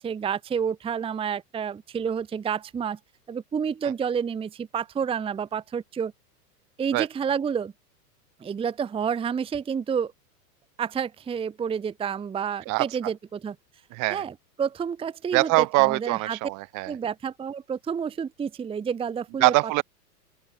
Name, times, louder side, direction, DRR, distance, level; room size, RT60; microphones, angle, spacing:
voice 1, 0.0-3.0 3.3-6.1 6.8-7.7 8.4-10.1 10.8-13.5 14.1-16.4 16.9-19.5, right 7 dB, 10° right, 0.8 m, -29 dB
voice 2, 12.7-13.1 13.9-14.2 15.3-16.9 19.4-19.8, right 27 dB, 40° right, 1.1 m, -23 dB
open air
hypercardioid pair, 115°, 49 cm